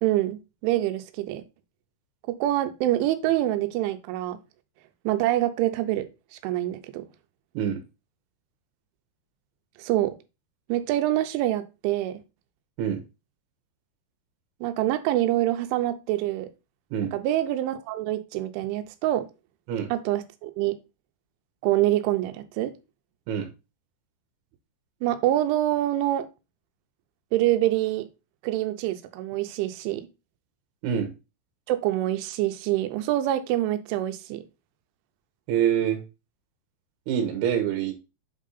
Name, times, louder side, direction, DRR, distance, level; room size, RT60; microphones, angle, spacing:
voice 1, 0.0-1.4 2.3-4.4 5.1-6.1 6.4-7.1 9.8-10.2 10.7-12.2 14.6-16.5 17.1-19.3 19.9-20.8 21.6-22.7 25.0-26.3 27.3-28.1 28.4-30.1 31.7-34.4, right 14 dB, 90° right, 9 dB, 3.1 m, -25 dB
voice 2, 35.5-36.0 37.1-37.9, right 9 dB, 70° right, 4 dB, 3.0 m, -25 dB
8.1 x 3.7 x 4.0 m, 0.28 s
omnidirectional pair, 5.4 m